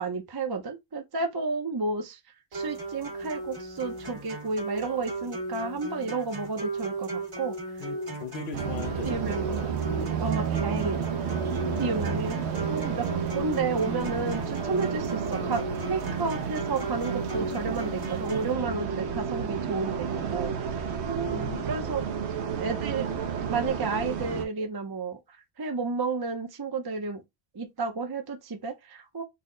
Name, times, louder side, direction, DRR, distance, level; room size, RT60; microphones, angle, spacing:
voice 1, 0.0-2.2 2.5-7.6 9.0-9.6 10.2-11.0 11.8-13.1 13.3-21.4 21.7-22.0 22.6-23.2 23.5-25.2 25.6-27.2 27.5-29.2, right 4 dB, 35° right, 0.4 m, -31 dB
sound 1, 2.5-18.5, right 2 dB, 70° right, 2.0 m, -36 dB
voice 2, 7.8-9.8 21.2-21.7, left 8 dB, 75° left, 0.9 m, -39 dB
sound 2, 8.5-24.4, right 7 dB, 85° right, 0.9 m, -31 dB
4.0 x 2.0 x 3.7 m
omnidirectional pair, 1.1 m